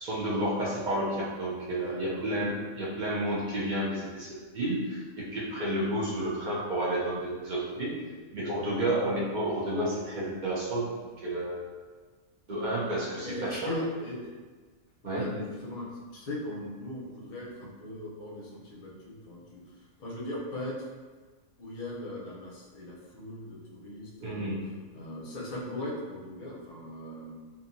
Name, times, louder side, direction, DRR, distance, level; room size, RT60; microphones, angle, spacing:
voice 1, 0.0-5.0 5.3-8.0 8.3-10.9 11.2-11.7 12.5-13.7 15.0-15.3 24.2-24.7, right 1 dB, 55° right, -7 dB, 0.5 m, -31 dB
voice 2, 1.8-2.3 13.2-14.2 15.0-19.6 20.0-20.9 21.6-24.6 24.9-27.5, left 1 dB, 45° left, -4 dB, 0.6 m, -39 dB
2.8 x 2.3 x 2.5 m, 1.4 s
omnidirectional pair, 1.4 m